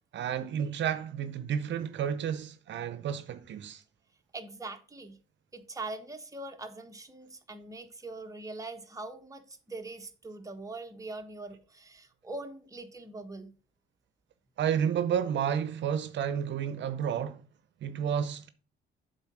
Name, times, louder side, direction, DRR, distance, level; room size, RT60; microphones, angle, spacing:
voice 1, 0.1-3.8 14.6-17.4 17.8-18.5, right 8 dB, 65° right, 0.7 m, -31 dB
voice 2, 4.3-5.2 5.5-13.5, right 2 dB, 15° right, 1.2 m, -42 dB
7.9 x 4.0 x 6.1 m
cardioid pair, 90°, 20 cm